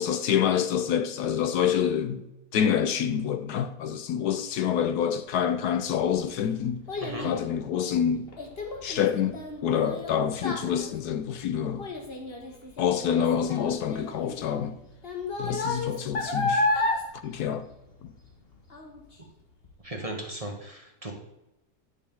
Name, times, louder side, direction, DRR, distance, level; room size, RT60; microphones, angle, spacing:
voice 1, 0.0-2.3 2.5-6.8 7.2-8.3 8.8-11.9 12.8-14.8 15.4-16.7 17.2-17.7 18.0-18.1, left 8 dB, 75° left, 1.2 m, -27 dB
Child speech kid speaking, 5.7-18.4 18.7-19.1 19.6-19.7, left 2 dB, 40° left, 1.5 m, -32 dB
voice 2, 19.8-21.1, right 1 dB, 25° right, 1.4 m, -36 dB
10.5 x 6.4 x 3.7 m
omnidirectional pair, 1.7 m